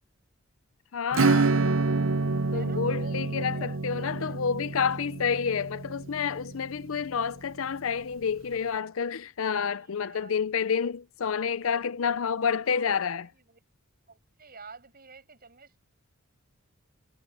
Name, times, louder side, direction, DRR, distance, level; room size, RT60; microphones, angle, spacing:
voice 1, 0.9-1.6 2.5-13.3, left 6 dB, 70° left, 0.5 m, -29 dB
Acoustic guitar / Strum, 1.1-7.4, right 3 dB, 65° right, 0.8 m, -28 dB
voice 2, 2.5-4.4 9.4-10.4 10.8-10.9 11.4-11.8 12.6-13.0 13.3-13.6 14.1-15.9, right 4 dB, 45° right, 6.5 m, -50 dB
head